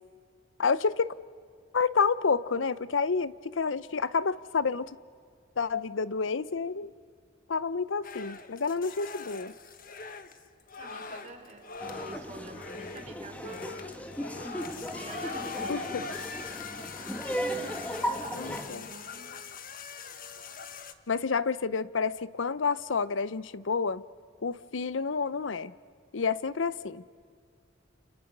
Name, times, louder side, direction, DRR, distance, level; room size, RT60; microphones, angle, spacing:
voice 1, 0.6-1.1 1.7-4.9 5.6-6.9 7.5-9.5 15.7-16.0 18.3-18.9 21.1-24.0 24.4-25.7 26.1-27.0, left 5 dB, 90° left, 17 dB, 0.7 m, -29 dB
sound 1, 8.0-20.9, left 5 dB, 50° left, 1.4 m, -42 dB
voice 2, 10.8-14.1 14.3-16.3 17.0-19.4, right 2 dB, 40° right, 2 dB, 4.5 m, -47 dB
Laughter, 11.8-18.7, equal, 10° left, 1.4 m, -36 dB
30.0 x 29.5 x 6.7 m, 2.3 s
head